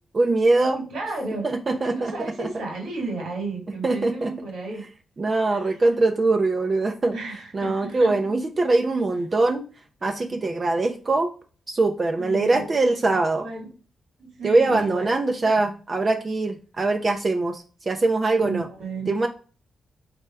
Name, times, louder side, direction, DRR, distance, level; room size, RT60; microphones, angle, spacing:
voice 1, 0.1-0.8 1.4-2.5 3.8-4.3 5.2-7.2 7.5-9.6 10.0-11.3 11.7-13.4 14.4-18.7 19.1-19.3, right 2 dB, 35° right, 5 dB, 0.5 m, -22 dB
voice 2, 0.7-4.8 5.5-5.8 7.1-8.1 12.2-12.7 13.1-13.7 14.2-15.1 15.4-15.6 18.4-19.2, right 3 dB, 85° right, 1 dB, 2.1 m, -34 dB
3.6 x 3.4 x 4.4 m, 0.38 s
cardioid pair, 105°, 0 cm